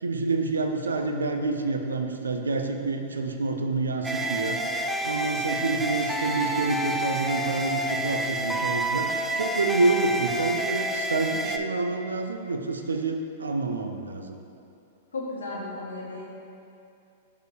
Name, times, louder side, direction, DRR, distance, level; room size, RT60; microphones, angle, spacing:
voice 1, 0.0-4.6 5.0-9.1 9.4-14.4, right 3 dB, 90° right, 5 dB, 0.5 m, -28 dB
sound 1, 4.0-11.6, right 1 dB, 10° right, 0.4 m, -29 dB
voice 2, 15.1-16.3, left 2 dB, 90° left, -5 dB, 1.5 m, -34 dB
5.0 x 4.7 x 4.8 m, 2.7 s
hypercardioid pair, 110°, 0 cm